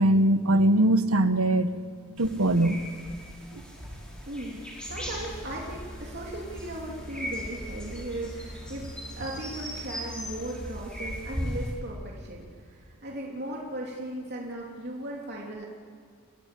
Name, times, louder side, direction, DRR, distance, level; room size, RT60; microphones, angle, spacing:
voice 1, 0.0-1.7 2.2-2.8, right 1 dB, 75° right, 11 dB, 1.2 m, -21 dB
sound 1, 2.2-11.7, equal, 5° left, 5.0 m, -39 dB
voice 2, 4.2-8.9 9.2-15.7, right 1 dB, 50° right, -3 dB, 3.0 m, -37 dB
sound 2, 4.9-10.8, equal, 55° left, 4.8 m, -44 dB
29.5 x 16.0 x 8.4 m, 2.1 s
head